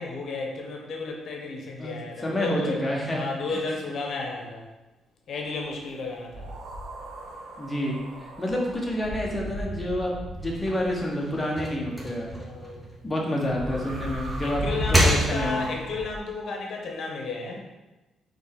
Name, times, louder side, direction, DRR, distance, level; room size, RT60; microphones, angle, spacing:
voice 1, 0.0-2.8 3.1-4.7 5.3-6.5 12.4-12.8 14.4-17.6, left 3 dB, 65° left, 1 dB, 0.9 m, -33 dB
voice 2, 1.8-3.2 3.5-3.6 7.6-12.3 13.0-14.6 14.9-15.7, left 1 dB, 20° left, -2 dB, 1.0 m, -29 dB
sound 1, 6.3-11.1 13.4-16.2, equal, 75° right, 0.8 m, -36 dB
sound 2, 10.4-13.6 14.0-15.8, equal, 10° right, 0.9 m, -28 dB
4.0 x 3.3 x 3.6 m, 1.1 s
cardioid pair, 90°, 0 cm